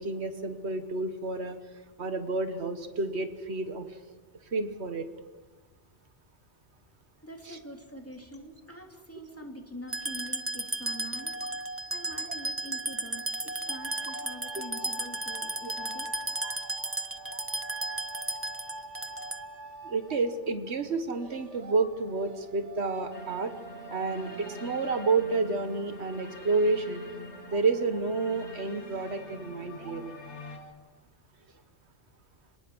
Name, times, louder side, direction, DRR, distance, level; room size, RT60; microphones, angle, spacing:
voice 1, 0.0-1.6 2.0-3.9 4.5-5.1 19.8-23.5 23.9-27.0 27.5-30.1, right 3 dB, 70° right, 9 dB, 1.5 m, -30 dB
voice 2, 7.2-11.3 11.9-16.1, equal, 10° left, 2 dB, 2.8 m, -45 dB
sound 1, 9.9-19.6, right 2 dB, 15° right, 0.6 m, -35 dB
sound 2, 13.7-28.0 28.3-28.4 28.7-30.7, right 1 dB, 85° right, 2.4 m, -46 dB
sound 3, 23.1-30.6, left 1 dB, 85° left, 2.7 m, -45 dB
26.5 x 19.0 x 6.2 m, 1.3 s
omnidirectional pair, 1.2 m